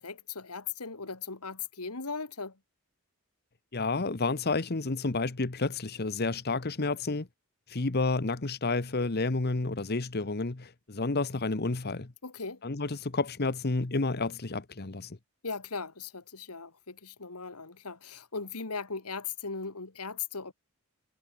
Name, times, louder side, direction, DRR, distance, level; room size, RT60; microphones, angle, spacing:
voice 1, 0.0-2.6 12.2-12.6 15.4-20.5, left 5 dB, 90° left, 2.4 m, -38 dB
voice 2, 3.7-7.3 7.7-12.1 12.6-15.2, left 3 dB, 45° left, 1.1 m, -30 dB
head